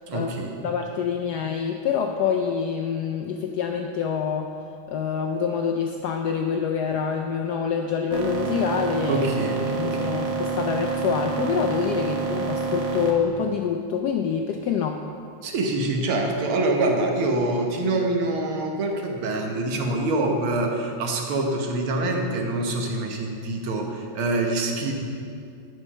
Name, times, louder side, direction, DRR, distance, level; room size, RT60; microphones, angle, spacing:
voice 1, 0.1-0.7 9.1-10.2 15.4-24.9, right 2 dB, 85° right, 2 dB, 1.9 m, -25 dB
voice 2, 0.6-4.5 4.9-9.2 9.7-15.0, left 7 dB, 80° left, 3 dB, 0.9 m, -26 dB
sound 1, 8.1-13.1, right 4 dB, 50° right, 1.2 m, -27 dB
9.8 x 6.3 x 5.5 m, 2.4 s
omnidirectional pair, 2.3 m